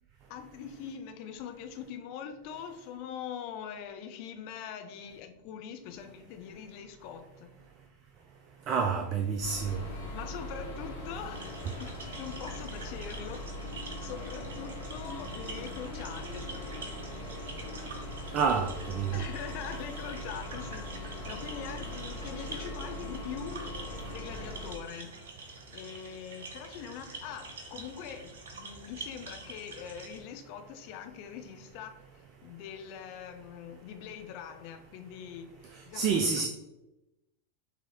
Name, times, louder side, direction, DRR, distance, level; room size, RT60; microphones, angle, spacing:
voice 1, 0.3-7.5 9.1-9.4 10.1-13.5 14.0-16.5 19.1-23.8 24.1-25.2 25.7-36.5, left 8 dB, 45° left, 0.5 m, -43 dB
voice 2, 8.7-9.8 18.3-19.2 35.9-36.5, right 5 dB, 35° right, 0.4 m, -28 dB
sound 1, 9.4-24.7, left 1 dB, 60° left, 1.4 m, -40 dB
sound 2, 11.3-30.2, right 3 dB, 60° right, 0.7 m, -46 dB
6.1 x 2.8 x 3.0 m
figure-of-eight pair, 90°, 0 cm